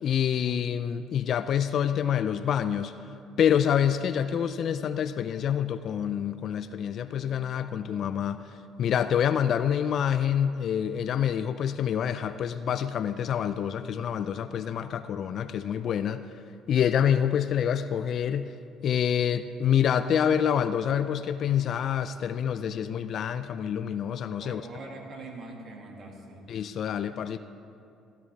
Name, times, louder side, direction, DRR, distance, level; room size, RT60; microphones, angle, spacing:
voice 1, 0.0-3.0 3.4-8.5 8.8-16.2 16.7-18.5 18.8-24.6 26.5-27.4, left 9 dB, 60° left, 12 dB, 0.3 m, -27 dB
voice 2, 24.4-26.5, right 2 dB, 50° right, 1 dB, 1.9 m, -43 dB
16.0 x 9.7 x 3.4 m, 2.5 s
supercardioid pair, 70°, 0 cm